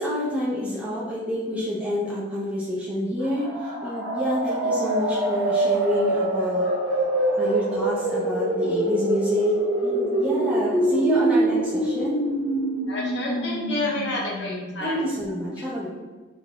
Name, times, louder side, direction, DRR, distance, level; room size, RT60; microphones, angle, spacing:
voice 1, 0.0-6.7 7.4-9.5 9.8-12.2 14.8-15.9, left 1 dB, 5° right, -8 dB, 0.5 m, -28 dB
sound 1, 3.2-14.9, right 1 dB, 80° right, 0.7 m, -25 dB
voice 2, 12.9-15.0 15.6-15.7, left 2 dB, 60° left, -3 dB, 0.7 m, -29 dB
3.4 x 2.5 x 2.2 m, 1.2 s
head